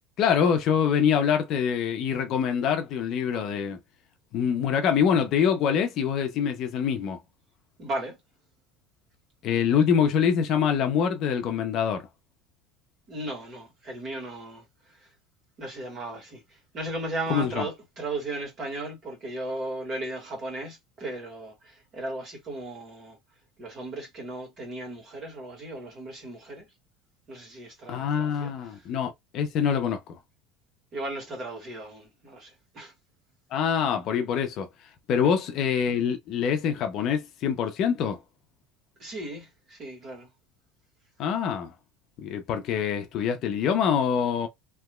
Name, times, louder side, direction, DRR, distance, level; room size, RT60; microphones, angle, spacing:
voice 1, 0.2-3.8 4.3-7.2 9.4-12.1 17.3-17.7 27.9-30.2 33.5-34.7 35.1-38.2 41.2-41.7 42.2-44.5, left 7 dB, 40° left, 0.6 m, -25 dB
voice 2, 7.8-8.2 13.1-14.6 15.6-23.2 23.6-26.7 27.3-28.8 30.9-32.9 35.2-35.3 39.0-40.3, right 2 dB, 35° right, 1.7 m, -36 dB
3.4 x 2.9 x 2.2 m
cardioid pair, 160°, 0 cm